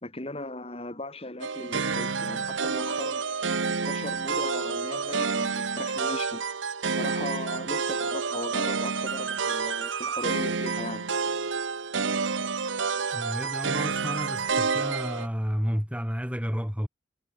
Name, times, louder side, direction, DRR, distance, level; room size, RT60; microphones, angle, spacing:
voice 1, 0.0-3.3 3.7-6.4 6.9-11.1, left 2 dB, 30° left, 3.8 m, -38 dB
sound 1, 1.4-15.3, right 5 dB, 80° right, 1.2 m, -29 dB
voice 2, 13.1-16.9, equal, 5° right, 3.1 m, -31 dB
head